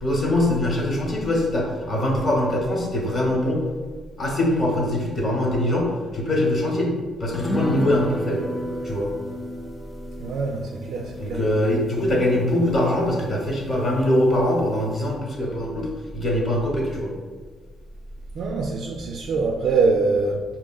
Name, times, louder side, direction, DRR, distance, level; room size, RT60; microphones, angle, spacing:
voice 1, 0.0-3.6 4.2-6.9 7.2-8.4 8.8-9.1 11.2-17.1, left 1 dB, 40° left, -1 dB, 1.0 m, -23 dB
sound 1, 7.3-14.1 14.4-14.5 14.9-15.0, left 1 dB, 20° left, 0.6 m, -33 dB
voice 2, 10.2-11.5 18.3-20.4, right 4 dB, 70° right, 0 dB, 0.3 m, -24 dB
4.9 x 2.9 x 2.3 m, 1.5 s
cardioid pair, 90°, 0 cm